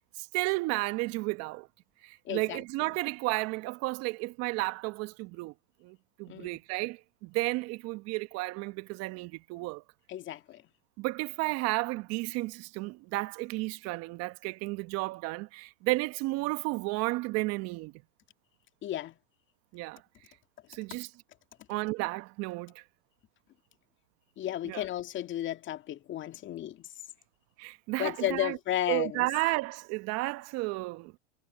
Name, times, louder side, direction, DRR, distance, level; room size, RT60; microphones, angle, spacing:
voice 1, 0.2-1.7 2.0-5.5 5.8-9.8 11.0-17.9 19.7-20.0 20.7-21.1 21.7-22.8 24.6-24.8 27.6-28.6 28.9-31.1, right 22 dB, 45° right, 1.2 m, -32 dB
voice 2, 2.3-2.6 6.3-6.6 10.1-10.6 18.8-19.2 24.4-26.9 28.0-29.3, left 12 dB, 35° left, 2.1 m, -33 dB
hypercardioid pair, 110°, 35 cm